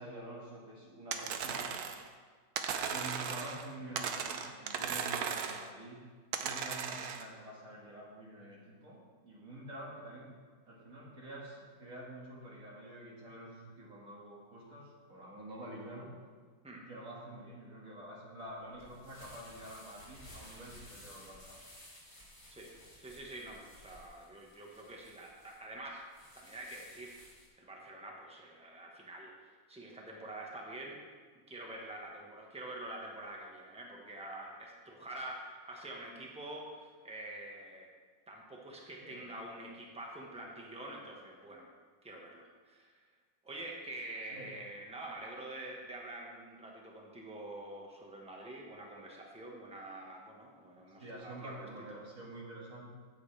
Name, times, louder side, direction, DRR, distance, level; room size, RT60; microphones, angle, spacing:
voice 1, 0.0-1.7 2.9-6.0 6.4-10.3 10.7-16.1 16.7-21.6 39.0-39.2 44.3-44.5 51.0-52.9, right 1 dB, 50° right, -4 dB, 2.4 m, -48 dB
sound 1, 1.1-2.1 2.6-3.7 4.0-5.7 6.3-7.3, right 7 dB, 65° right, 1.1 m, -37 dB
sound 2, 18.4-27.5, left 1 dB, 25° left, 3.1 m, -56 dB
voice 2, 23.0-26.1 26.3-27.2 27.6-31.0 31.5-37.9 38.3-41.7 42.0-43.0 43.4-51.7, right 1 dB, 5° right, -1 dB, 1.2 m, -46 dB
14.5 x 7.4 x 3.4 m, 1.5 s
omnidirectional pair, 1.9 m